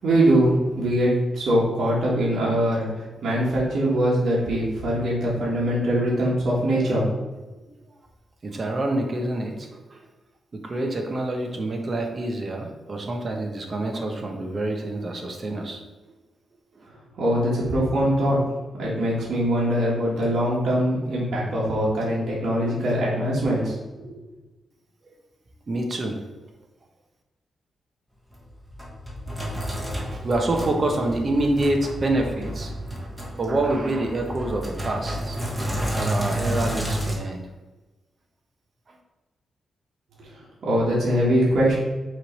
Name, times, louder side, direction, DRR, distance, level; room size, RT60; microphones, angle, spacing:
voice 1, 0.0-7.0 17.2-18.4 18.8-24.2 40.2-40.3 40.6-41.7, equal, 70° right, -7 dB, 1.9 m, -22 dB
voice 2, 8.4-10.1 10.5-16.1 16.7-16.8 25.7-26.2 29.8-32.9 33.4-35.5 35.9-37.4 38.9-39.0, right 2 dB, 35° right, 3 dB, 1.0 m, -27 dB
Sink (filling or washing), 28.3-37.2, equal, 10° right, 1.3 m, -31 dB
6.1 x 3.2 x 5.3 m, 1.2 s
wide cardioid pair, 135°, 0 cm